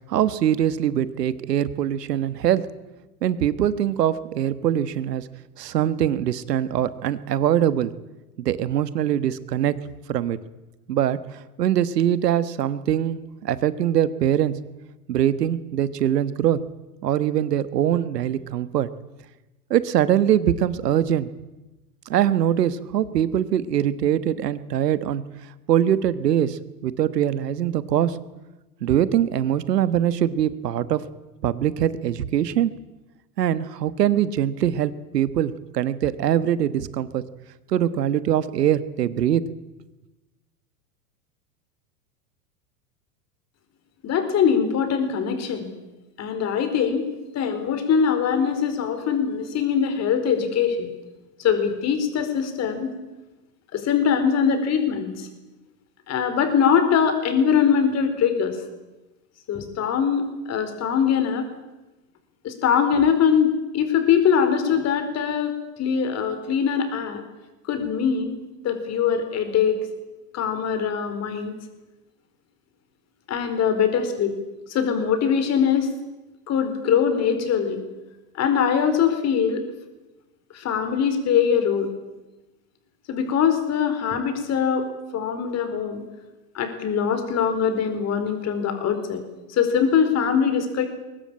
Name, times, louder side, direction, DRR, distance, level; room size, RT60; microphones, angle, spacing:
voice 1, 0.1-2.6 3.2-5.3 5.6-7.9 8.4-9.7 10.1-10.4 10.9-14.5 15.1-16.6 17.0-18.9 19.7-21.3 22.1-25.2 25.7-28.2 28.8-31.0 31.4-32.7 33.4-37.2 37.7-39.4, right 10 dB, 80° right, 15 dB, 1.5 m, -22 dB
voice 2, 44.0-45.7 46.2-47.1 47.3-50.9 51.4-53.0 53.7-55.3 56.1-58.6 59.5-61.5 62.4-67.2 67.7-69.8 70.3-71.5 73.3-74.3 74.7-75.9 76.5-77.8 78.4-79.7 80.5-81.9 83.1-86.1 86.5-89.2 89.5-90.9, left 7 dB, 35° left, 8 dB, 4.5 m, -22 dB
22.0 x 19.5 x 8.9 m, 1.1 s
hypercardioid pair, 115°, 47 cm